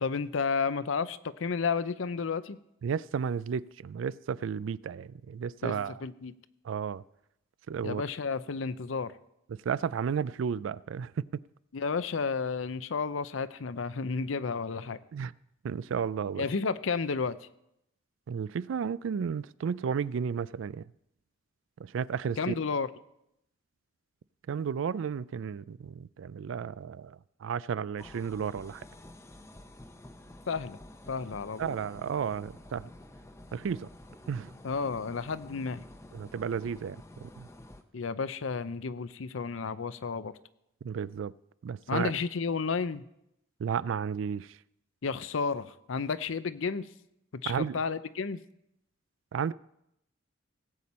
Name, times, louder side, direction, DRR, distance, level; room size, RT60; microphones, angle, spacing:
voice 1, 0.0-2.6 5.6-5.7 6.0-6.3 7.8-9.1 11.7-15.0 16.4-17.4 22.4-22.9 30.5-30.8 31.1-31.8 34.6-35.8 37.9-40.3 41.9-43.0 45.0-46.9 47.3-48.4, left 5 dB, 75° left, 0.6 m, -32 dB
voice 2, 2.8-6.0 6.7-7.0 7.7-8.0 9.7-11.4 15.1-15.3 15.6-16.5 18.3-20.8 21.8-22.5 24.5-27.2 27.4-28.8 31.6-32.9 33.5-33.9 34.3-34.5 36.1-37.5 40.8-41.3 41.6-42.1 43.6-44.5 47.5-47.8 49.3-49.5, right 7 dB, 70° right, 0.3 m, -33 dB
sound 1, 28.0-37.8, left 1 dB, 15° left, 0.7 m, -50 dB
18.0 x 8.5 x 4.2 m
head